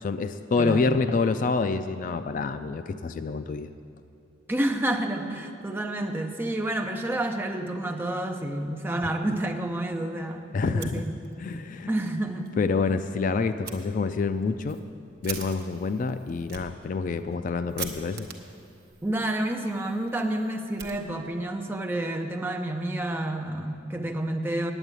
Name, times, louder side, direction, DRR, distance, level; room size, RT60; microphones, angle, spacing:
voice 1, 0.0-3.7 10.5-11.0 11.4-11.9 12.6-14.8 15.2-18.3, left 4 dB, 45° left, 10 dB, 0.3 m, -27 dB
voice 2, 0.6-0.9 4.5-11.1 11.9-12.5 19.0-24.7, right 1 dB, 10° right, 2 dB, 0.7 m, -29 dB
Fire, 10.6-11.6 11.9-12.0 12.4-12.5 13.6-13.8 14.4-21.5, right 7 dB, 55° right, 1.0 m, -43 dB
9.0 x 8.9 x 8.1 m, 2.6 s
head